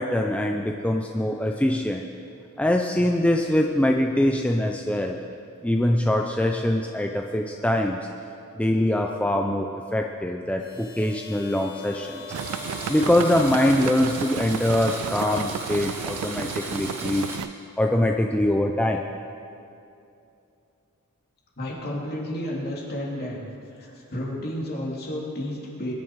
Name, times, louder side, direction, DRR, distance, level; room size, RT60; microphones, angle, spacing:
voice 1, 0.0-2.1 2.6-5.2 5.6-8.0 8.5-12.2 12.9-17.3 17.8-19.0, left 1 dB, 5° left, 2 dB, 0.5 m, -23 dB
sound 1, 10.6-14.5, left 6 dB, 80° left, 3.5 m, -41 dB
Domestic sounds home sounds, 12.3-17.4, right 1 dB, 10° right, 2.4 m, -37 dB
sound 2, 12.3-17.5, right 9 dB, 75° right, 0.3 m, -33 dB
voice 2, 21.6-23.4 23.8-25.9, left 1 dB, 45° left, -3 dB, 3.2 m, -31 dB
22.5 x 11.0 x 4.7 m, 2.7 s
head